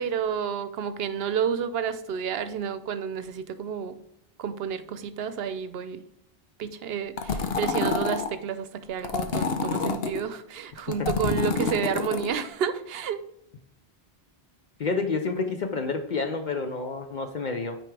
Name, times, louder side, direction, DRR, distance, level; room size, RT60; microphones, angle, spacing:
voice 1, 0.0-4.0 4.4-6.1 6.6-13.2, right 7 dB, 70° right, 0.8 m, -30 dB
sound 1, 7.2-8.3 9.0-10.2 10.8-12.3, left 5 dB, 70° left, 1.0 m, -27 dB
voice 2, 14.8-17.8, left 4 dB, 55° left, 0.7 m, -29 dB
9.1 x 4.6 x 3.3 m
omnidirectional pair, 1.1 m